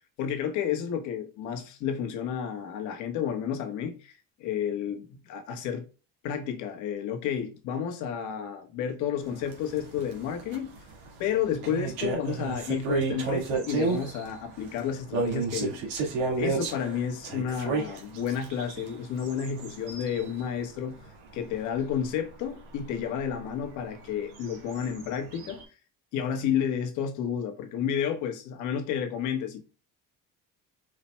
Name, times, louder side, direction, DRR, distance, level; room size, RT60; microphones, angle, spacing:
voice 1, 0.2-5.8 6.2-10.7 11.2-15.8 16.4-21.0 21.3-25.6 26.1-29.6, left 8 dB, 70° left, 1.3 m, -31 dB
sound 1, 9.2-20.4 20.8-21.0 21.3-21.6 21.9-22.0 22.4-22.5 22.8-22.9 24.0-25.6, right 4 dB, 85° right, 1.9 m, -32 dB
4.9 x 4.3 x 2.2 m
cardioid pair, 140°, 31 cm